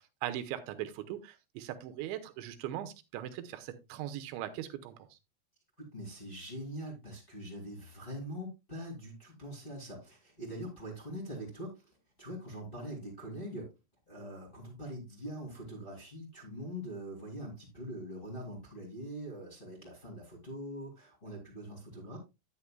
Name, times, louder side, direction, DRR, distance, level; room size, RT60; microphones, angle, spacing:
voice 1, 0.0-5.2, right 12 dB, 80° right, 8 dB, 2.8 m, -40 dB
voice 2, 5.8-13.7 14.1-22.2, equal, 20° left, -3 dB, 1.3 m, -43 dB
9.7 x 9.7 x 2.2 m, 0.24 s
omnidirectional pair, 5.8 m